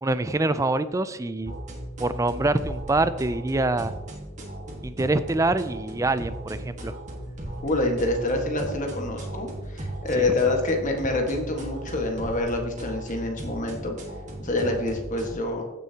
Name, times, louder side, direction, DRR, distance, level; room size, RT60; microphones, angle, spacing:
voice 1, 0.0-1.5 2.0-3.9 4.8-7.0 10.2-10.4, right 2 dB, 15° right, 13 dB, 0.4 m, -25 dB
sound 1, 1.4-15.3, right 1 dB, 35° right, 1.7 m, -36 dB
voice 2, 7.6-13.9 14.4-15.7, left 2 dB, 35° left, 2 dB, 1.5 m, -26 dB
15.5 x 6.9 x 2.9 m, 1.1 s
head